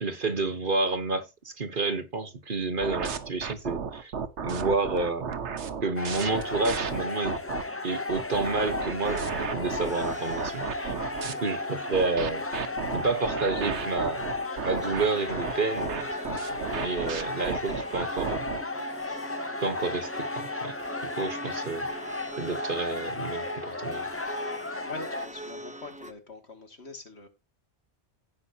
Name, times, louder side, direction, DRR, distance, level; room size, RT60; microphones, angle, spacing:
voice 1, 0.0-4.1 4.4-5.4 5.8-7.4 7.8-10.9 11.2-12.4 12.9-14.3 14.6-16.1 16.8-18.5 19.6-20.8 21.0-21.9 22.4-24.1, right 3 dB, 50° right, 1.3 m, -30 dB
sound 1, 2.8-7.6 8.1-11.3 11.9-18.6, right 6 dB, 75° right, 1.3 m, -33 dB
sound 2, 6.0-25.3, left 2 dB, 15° left, 0.7 m, -34 dB
sound 3, 9.0-26.1, right 1 dB, 5° right, 1.0 m, -43 dB
voice 2, 24.8-27.3, left 3 dB, 70° left, 2.6 m, -43 dB
17.0 x 5.7 x 2.9 m
omnidirectional pair, 1.2 m